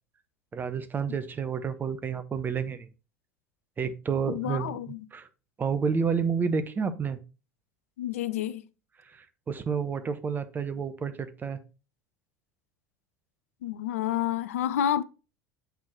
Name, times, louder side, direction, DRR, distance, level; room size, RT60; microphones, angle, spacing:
voice 1, 0.5-2.9 3.8-4.8 5.1-5.3 5.6-7.2 9.1-11.6, right 6 dB, 25° right, 0.8 m, -30 dB
voice 2, 4.3-5.1 8.0-8.7 13.6-15.0, left 11 dB, 65° left, 0.4 m, -29 dB
8.1 x 4.3 x 4.1 m
figure-of-eight pair, 70°, 8 cm